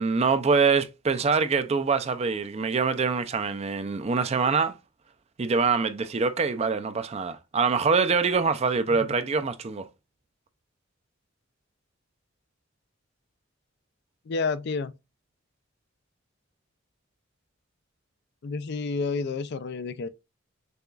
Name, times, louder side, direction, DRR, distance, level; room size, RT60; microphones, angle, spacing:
voice 1, 0.0-4.7 5.4-9.9, right 5 dB, 30° right, 0.4 m, -24 dB
voice 2, 14.3-14.9 18.4-20.1, left 4 dB, 55° left, 0.4 m, -29 dB
6.7 x 2.3 x 2.3 m
head